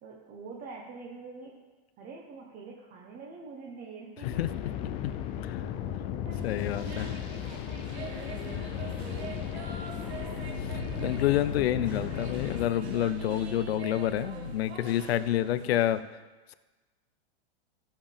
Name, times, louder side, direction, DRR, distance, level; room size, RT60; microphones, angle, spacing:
voice 1, 0.0-1.5 2.0-4.4 6.2-10.0 15.4-15.9, right 4 dB, 25° right, -2 dB, 1.3 m, -46 dB
sound 1, 4.2-12.7, left 10 dB, 20° left, 0.3 m, -36 dB
sound 2, 6.3-16.0, right 5 dB, 90° right, 2.0 m, -45 dB
voice 2, 6.4-7.1 11.0-16.0, left 12 dB, 75° left, 14 dB, 0.7 m, -28 dB
sound 3, 10.0-15.9, right 3 dB, 10° right, 1.4 m, -43 dB
16.0 x 7.3 x 3.5 m, 1.2 s
supercardioid pair, 150°, 31 cm